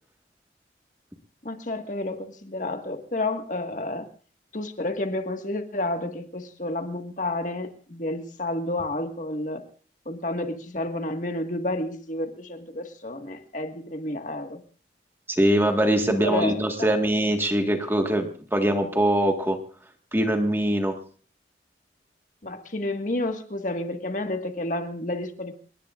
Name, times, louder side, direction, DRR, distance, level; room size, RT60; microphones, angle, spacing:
voice 1, 1.4-4.1 4.5-9.6 10.1-14.6 16.1-17.1 22.4-25.5, left 2 dB, 45° left, 5 dB, 1.8 m, -30 dB
voice 2, 15.3-19.6 20.1-21.0, right 1 dB, 10° right, 4 dB, 1.7 m, -22 dB
29.0 x 19.0 x 2.5 m, 0.40 s
head